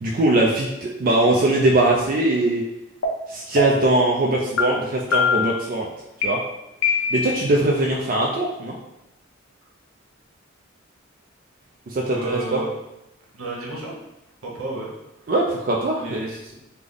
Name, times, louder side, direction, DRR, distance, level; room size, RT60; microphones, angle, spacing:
voice 1, 0.0-2.6 3.3-5.9 6.2-6.4 7.1-8.8 11.9-12.6 15.3-16.2, right 2 dB, 40° right, -2 dB, 0.3 m, -21 dB
sound 1, 3.0-3.1 3.6-3.9 4.6-4.7 5.1-5.6 6.2-6.3 6.8-7.4, left 5 dB, 90° left, 0.6 m, -22 dB
voice 2, 12.1-12.7 13.3-14.0 14.4-14.9 15.2-15.3 15.9-16.6, right 2 dB, 85° right, -3 dB, 1.0 m, -32 dB
3.3 x 2.0 x 3.7 m, 0.91 s
head